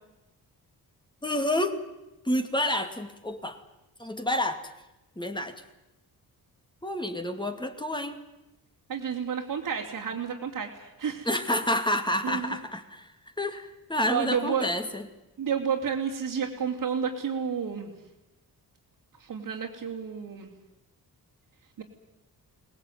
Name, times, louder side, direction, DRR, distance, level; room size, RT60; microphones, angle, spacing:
voice 1, 1.2-1.8 2.2-3.6 4.0-4.6 5.2-5.5 6.8-8.2 11.2-13.1 13.4-15.1, left 1 dB, 10° left, 6 dB, 2.5 m, -29 dB
voice 2, 8.9-11.3 12.2-12.6 14.1-14.7 15.4-17.9 19.2-20.5 21.8-21.9, right 7 dB, 65° right, -4 dB, 3.3 m, -31 dB
23.5 x 19.0 x 9.5 m, 0.97 s
cardioid pair, 100°, 38 cm